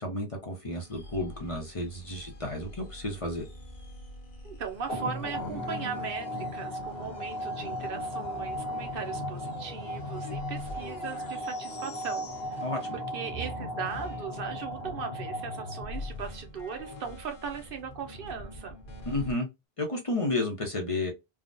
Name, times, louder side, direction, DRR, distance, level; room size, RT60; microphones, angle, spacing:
voice 1, 0.0-3.4 12.6-12.8 19.1-19.5 19.8-21.1, left 2 dB, 35° left, 0.8 m, -31 dB
sound 1, 0.7-13.0 13.3-19.3, left 2 dB, 55° left, 1.1 m, -44 dB
voice 2, 4.4-12.3 12.9-18.8, right 6 dB, 65° right, 0.8 m, -38 dB
sound 2, 4.9-16.3, equal, 90° left, 1.2 m, -36 dB
3.5 x 2.2 x 2.6 m
omnidirectional pair, 1.0 m